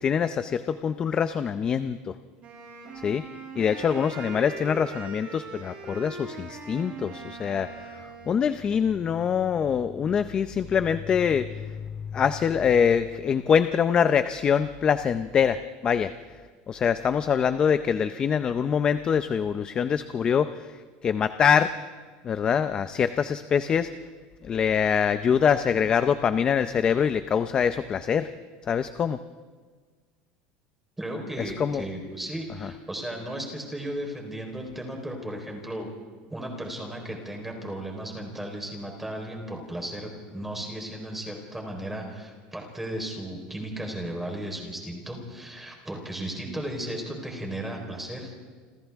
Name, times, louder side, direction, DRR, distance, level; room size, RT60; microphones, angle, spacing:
voice 1, 0.0-2.1 3.0-3.3 3.6-16.1 16.7-21.7 22.2-23.9 24.4-28.3 28.7-29.2 31.4-31.9 32.6-32.7, left 7 dB, 25° left, 11 dB, 0.6 m, -24 dB
Wind instrument woodwind instrument, 2.4-8.6, right 4 dB, 35° right, 6.0 m, -41 dB
voice 2, 31.0-35.9 36.3-48.5, right 1 dB, 5° right, 1 dB, 4.1 m, -35 dB
28.5 x 26.0 x 3.6 m, 1.5 s
cardioid pair, 160°, 4 cm